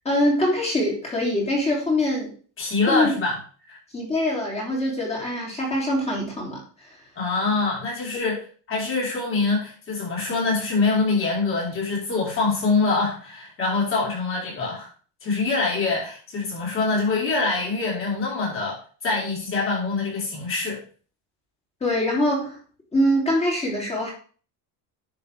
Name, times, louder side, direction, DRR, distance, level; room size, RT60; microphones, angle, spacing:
voice 1, 0.1-2.3 2.9-3.1 3.9-6.6 21.8-22.6 22.9-24.1, left 1 dB, 15° left, -2 dB, 3.5 m, -23 dB
voice 2, 2.6-3.4 3.7-3.8 7.1-8.4 8.7-14.9 15.2-20.8, left 3 dB, 30° left, -4 dB, 5.0 m, -24 dB
10.5 x 6.7 x 3.7 m, 0.40 s
cardioid pair, 175°, 42 cm